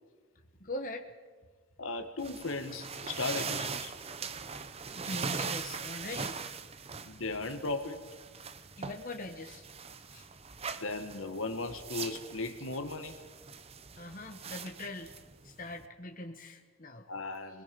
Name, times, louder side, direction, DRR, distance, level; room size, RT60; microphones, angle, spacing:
voice 1, 0.6-1.1 4.9-6.4 6.9-7.0 8.8-9.7 10.1-10.3 14.0-15.1 15.4-17.1, left 2 dB, 40° left, 4 dB, 1.5 m, -42 dB
voice 2, 1.8-3.9 7.1-8.0 10.8-13.2 17.1-17.6, left 3 dB, 75° left, 7 dB, 1.7 m, -36 dB
sound 1, 2.2-15.8, right 5 dB, 30° right, 0.7 m, -41 dB
26.5 x 21.0 x 5.4 m, 1.4 s
head